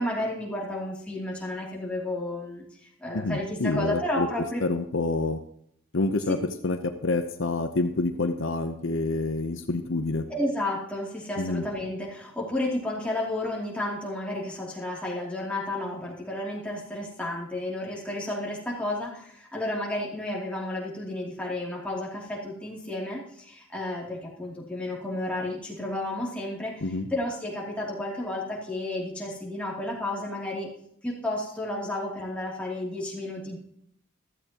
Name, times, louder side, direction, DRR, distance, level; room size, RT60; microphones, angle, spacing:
voice 1, 0.0-4.6 10.3-26.7 27.1-30.7 31.0-33.6, left 1 dB, 5° left, -4 dB, 2.8 m, -32 dB
voice 2, 3.1-4.3 4.6-5.4 5.9-6.4 6.6-10.2 11.4-11.7 26.8-27.1, left 2 dB, 60° left, 7 dB, 0.8 m, -27 dB
15.0 x 13.0 x 3.0 m, 0.70 s
head